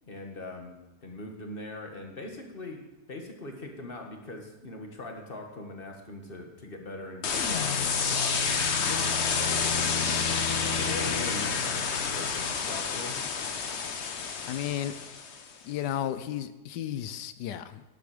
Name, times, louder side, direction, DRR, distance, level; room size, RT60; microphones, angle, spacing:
voice 1, 0.0-2.8 3.1-9.5 10.7-13.2, left 2 dB, 35° left, 2 dB, 1.8 m, -41 dB
sound 1, 7.2-15.4, left 5 dB, 50° left, 1.0 m, -29 dB
sound 2, 8.0-11.9, left 4 dB, 20° left, 0.8 m, -37 dB
voice 2, 14.4-14.9 15.6-17.8, left 11 dB, 85° left, 13 dB, 1.3 m, -33 dB
12.0 x 10.5 x 5.0 m, 1.0 s
omnidirectional pair, 1.8 m